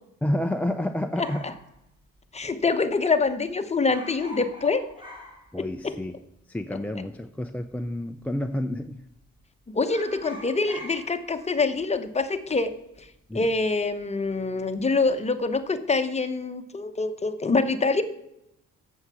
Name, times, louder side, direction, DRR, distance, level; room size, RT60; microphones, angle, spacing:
voice 1, 0.2-1.5 5.5-6.2 6.5-9.0 13.3-13.5, left 1 dB, 5° left, 5 dB, 0.4 m, -29 dB
voice 2, 1.2-1.5 2.3-4.8 5.6-5.9 9.7-12.7 13.0-13.1 13.3-18.0, left 3 dB, 20° left, 9 dB, 0.9 m, -25 dB
sound 1, 1.2-2.7 2.9-3.0 3.3-3.5 3.8-6.1 6.4-6.5 7.3-7.9 8.2-8.5 8.8-9.4 9.8-14.4 14.7-15.1, equal, 15° right, 3.2 m, -45 dB
7.9 x 7.1 x 5.6 m, 0.82 s
cardioid pair, 90°, 30 cm